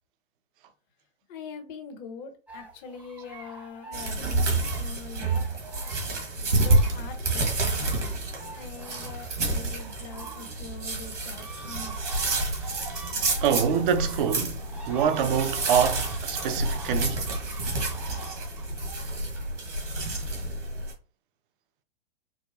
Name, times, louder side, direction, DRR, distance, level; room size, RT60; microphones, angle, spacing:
voice 1, 1.3-5.4 6.5-7.9 8.5-11.9, left 5 dB, 40° left, 1.0 m, -43 dB
sound 1, 2.5-7.2 7.5-19.0, right 3 dB, 5° right, 0.6 m, -45 dB
sound 2, 3.9-20.9, right 2 dB, 85° right, 1.6 m, -29 dB
voice 2, 13.4-14.6 14.9-17.3, right 7 dB, 45° right, 0.6 m, -25 dB
4.6 x 2.2 x 2.7 m
hypercardioid pair, 115°, 35 cm